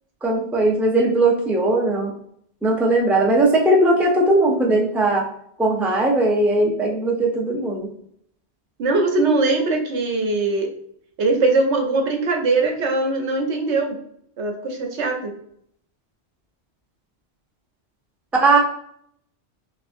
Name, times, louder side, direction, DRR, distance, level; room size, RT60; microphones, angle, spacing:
voice 1, 0.2-2.1 2.6-5.3 5.6-7.9 18.4-18.6, right 2 dB, ahead, -1 dB, 0.5 m, -18 dB
voice 2, 8.8-10.7 11.2-14.0 14.4-15.3, right 3 dB, 85° right, 3 dB, 1.1 m, -21 dB
5.9 x 2.4 x 2.6 m, 0.68 s
omnidirectional pair, 1.1 m